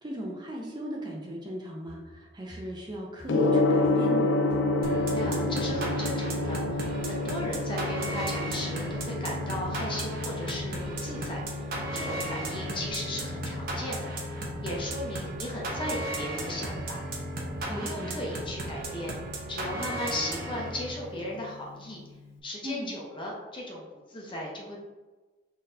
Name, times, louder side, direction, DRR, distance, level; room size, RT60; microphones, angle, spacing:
voice 1, 0.0-4.3 17.7-18.2 22.6-22.9, equal, 25° right, -1 dB, 0.5 m, -37 dB
sound 1, 1.9-2.2 2.5-2.9 3.2-3.6 3.8-4.2 4.5-4.8 5.2-5.4 6.4-6.6 7.4-7.5 8.2-8.4 8.9-9.1 9.5-9.7 10.1-10.2 11.2-11.3 12.3-12.5 13.1-13.4 14.0-14.3 14.9-15.1 15.7-16.0 16.6-16.8 17.4-17.7, equal, 10° left, 1.2 m, -47 dB
Gong, 3.3-22.3, left 2 dB, 80° left, 0.4 m, -31 dB
sound 2, 4.8-21.1, right 1 dB, 55° right, 0.8 m, -35 dB
voice 2, 5.1-11.6 11.9-14.3 14.6-17.0 17.6-19.2 19.5-22.0 22.4-24.8, left 1 dB, 30° left, -2 dB, 0.8 m, -36 dB
3.9 x 3.2 x 2.7 m, 1.2 s
head